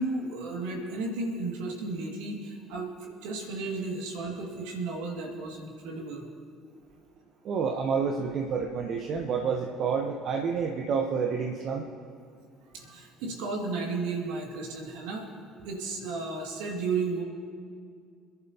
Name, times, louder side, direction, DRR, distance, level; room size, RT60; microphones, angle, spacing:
voice 1, 0.0-6.3 12.7-15.3 15.6-17.2, right 3 dB, 70° right, 0 dB, 2.4 m, -33 dB
voice 2, 7.4-11.8, right 6 dB, 55° right, 2 dB, 1.1 m, -29 dB
26.5 x 11.0 x 3.0 m, 2.3 s
hypercardioid pair, 60°, 0 cm